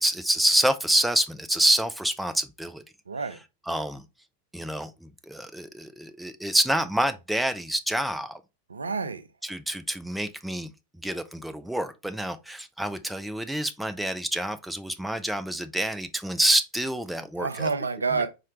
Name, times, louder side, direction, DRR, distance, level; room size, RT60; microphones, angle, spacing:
voice 1, 0.0-2.8 3.7-4.0 4.5-8.4 9.4-10.7 11.0-17.7, right 1 dB, 5° right, 0.4 m, -27 dB
voice 2, 3.1-3.4 8.7-9.3 17.4-18.3, right 4 dB, 75° right, 0.4 m, -28 dB
4.3 x 2.4 x 2.8 m
figure-of-eight pair, 90°, 0 cm